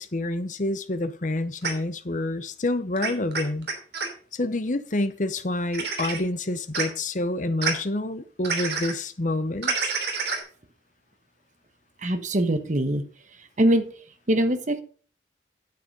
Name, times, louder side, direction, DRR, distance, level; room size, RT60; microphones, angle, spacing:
voice 1, 0.0-3.7 4.3-9.9, left 2 dB, 45° left, 0.9 m, -28 dB
sound 1, 1.6-1.7 3.0-4.1 5.7-6.2 6.7-6.8 7.6-7.7 8.4-8.9 9.6-10.4, right 4 dB, 65° right, 2.9 m, -27 dB
voice 2, 12.0-13.0 13.4-13.9 14.3-14.8, right 1 dB, 45° right, 1.2 m, -23 dB
9.2 x 7.9 x 5.3 m
head